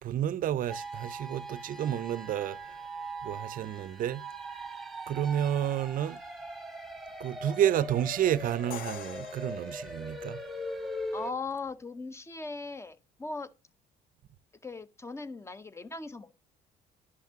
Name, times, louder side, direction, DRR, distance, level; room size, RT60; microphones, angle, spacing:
voice 1, 0.0-2.9 3.2-4.2 5.1-6.2 7.2-10.4, right 10 dB, 55° right, 0.6 m, -30 dB
sound 1, 0.7-11.3, right 1 dB, ahead, 1.5 m, -41 dB
Crash cymbal, 8.7-10.6, left 12 dB, 60° left, 0.5 m, -45 dB
voice 2, 11.1-13.5 14.6-16.3, left 3 dB, 15° left, 0.7 m, -39 dB
11.0 x 5.8 x 2.8 m
cardioid pair, 110°, 17 cm